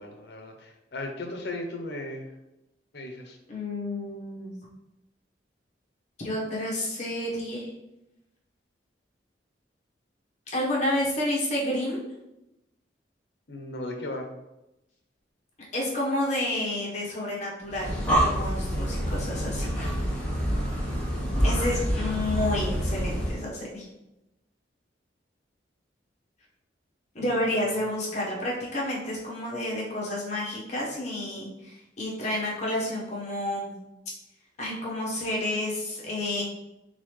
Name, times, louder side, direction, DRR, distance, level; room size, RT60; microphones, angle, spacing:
voice 1, 0.0-2.3 2.9-3.4 13.5-14.3 27.2-27.3, left 2 dB, 60° left, 3 dB, 0.8 m, -36 dB
voice 2, 3.5-4.5 6.2-7.7 10.5-12.0 15.7-19.8 21.4-23.9 27.1-33.7 34.6-36.4, left 1 dB, 40° left, -4 dB, 1.2 m, -30 dB
Breathing, 17.7-23.5, equal, 10° left, 1.2 m, -27 dB
4.0 x 3.8 x 3.2 m, 0.90 s
head